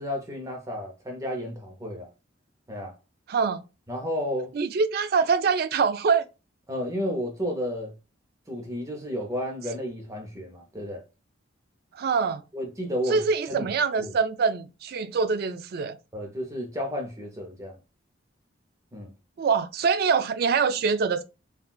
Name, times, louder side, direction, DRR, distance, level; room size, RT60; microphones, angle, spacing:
voice 1, 0.0-2.1 2.7-2.9 3.9-4.5 6.7-7.9 8.5-11.0 12.5-13.2 13.5-13.7 14.0-14.1 16.1-17.8 18.9-19.1, equal, 15° right, 0.6 m, -32 dB
voice 2, 3.3-3.6 4.5-6.3 11.9-12.4 13.1-16.0 19.4-21.2, right 5 dB, 50° right, 0.3 m, -24 dB
3.7 x 2.3 x 2.3 m
head